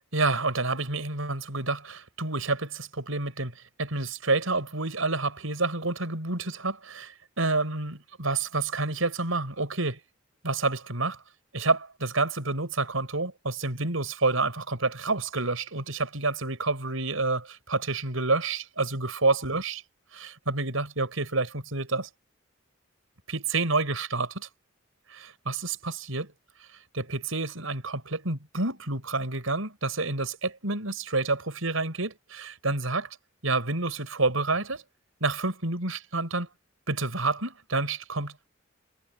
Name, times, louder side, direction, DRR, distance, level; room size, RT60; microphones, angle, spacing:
voice 1, 0.1-10.0 10.4-11.2 11.5-19.8 20.1-22.1 23.3-24.5 25.1-26.3 26.9-33.1 33.4-34.8 35.2-36.5 36.9-38.3, right 3 dB, 90° right, 5.4 m, -29 dB
head